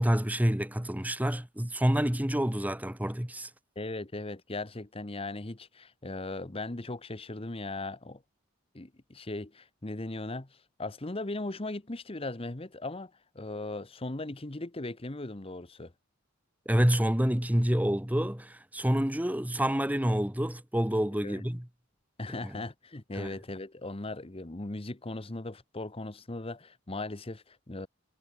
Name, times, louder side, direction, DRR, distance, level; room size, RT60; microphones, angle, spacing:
voice 1, 0.0-3.5 16.6-21.6 22.4-22.6 23.1-23.3, equal, 5° right, 1.3 m, -28 dB
voice 2, 3.8-8.2 8.7-15.9 21.2-21.5 22.2-27.9, left 2 dB, 25° left, 1.0 m, -38 dB
head